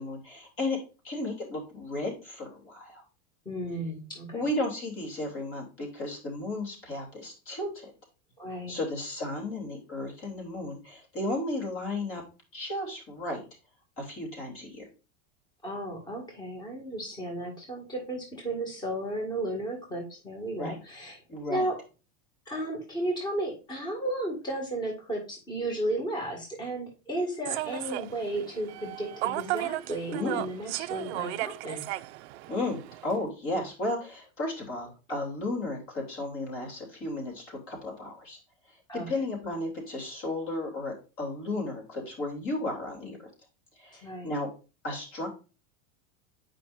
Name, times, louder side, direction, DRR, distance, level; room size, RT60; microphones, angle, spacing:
voice 1, 0.0-3.0 4.3-7.9 8.7-12.2 12.5-13.4 14.0-14.8 20.6-20.8 21.3-21.7 30.1-30.4 32.5-38.4 38.7-38.8 39.1-43.3 43.8-44.5 44.8-45.3, left 2 dB, 35° left, 0 dB, 2.9 m, -34 dB
voice 2, 3.5-4.5 8.4-8.7 15.6-21.2 21.5-21.8 22.5-31.9 38.9-39.1 43.0-43.1 44.0-44.3, right 1 dB, 10° left, 0 dB, 2.0 m, -34 dB
Human voice / Subway metro underground, 27.4-33.2, right 17 dB, 60° right, 0.5 m, -35 dB
8.4 x 5.3 x 2.5 m, 0.32 s
supercardioid pair, 160°, 39 cm